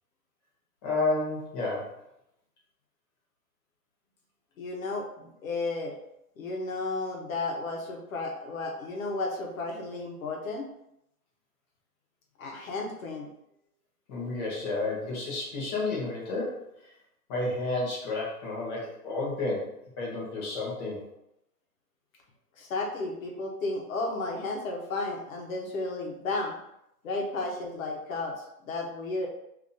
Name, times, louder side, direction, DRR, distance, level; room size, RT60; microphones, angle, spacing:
voice 1, 0.8-2.0 14.1-16.9 17.3-21.1, left 2 dB, 15° left, -4 dB, 0.6 m, -31 dB
voice 2, 4.6-5.9 6.4-10.7 12.4-13.3 22.6-26.6 27.0-29.3, left 3 dB, 55° left, 0 dB, 1.0 m, -33 dB
2.8 x 2.6 x 3.7 m, 0.81 s
hypercardioid pair, 145°, 48 cm